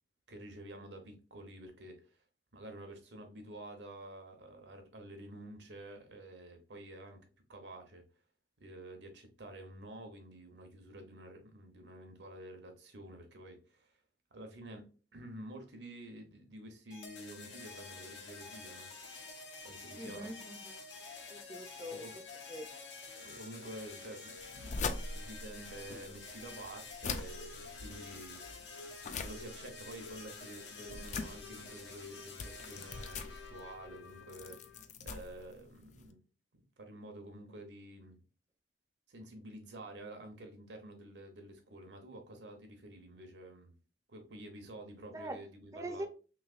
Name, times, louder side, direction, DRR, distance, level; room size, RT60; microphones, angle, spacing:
voice 1, 0.3-2.2 2.5-7.2 7.5-8.0 8.6-14.0 14.3-18.9 19.6-20.4 21.8-22.1 23.2-28.7 29.2-36.2 36.5-38.2 39.1-43.7 44.1-46.1, right 1 dB, 75° right, 0.9 m, -50 dB
sound 1, 16.9-34.9, left 4 dB, 85° left, 1.0 m, -49 dB
voice 2, 20.0-20.7 21.3-22.0 22.5-22.7 45.1-45.4 45.7-46.1, right 1 dB, 20° right, 0.4 m, -43 dB
sound 2, 24.4-36.1, left 4 dB, 40° left, 0.3 m, -43 dB
3.2 x 3.0 x 2.4 m
head